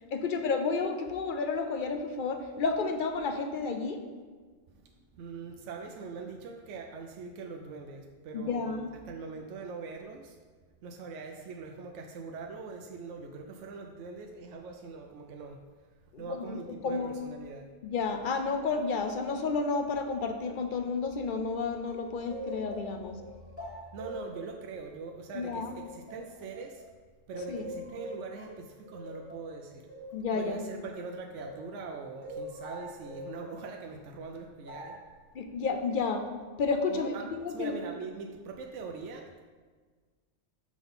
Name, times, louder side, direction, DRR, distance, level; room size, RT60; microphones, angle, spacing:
voice 1, 0.1-4.0 8.3-8.9 16.1-17.2 17.8-23.2 25.3-25.7 27.5-27.7 30.1-30.7 35.3-36.2 36.6-37.8, left 4 dB, 55° left, 6 dB, 0.6 m, -31 dB
voice 2, 5.2-8.8 9.1-10.3 10.8-15.6 16.2-17.6 23.9-26.8 27.3-29.8 30.3-34.9 36.9-39.4, right 4 dB, 80° right, 3 dB, 0.9 m, -42 dB
sound 1, 21.9-26.9 27.3-31.7 32.2-33.7 34.6-35.1, right 1 dB, 10° right, 1.5 m, -44 dB
6.1 x 3.9 x 5.4 m, 1.5 s
omnidirectional pair, 1.2 m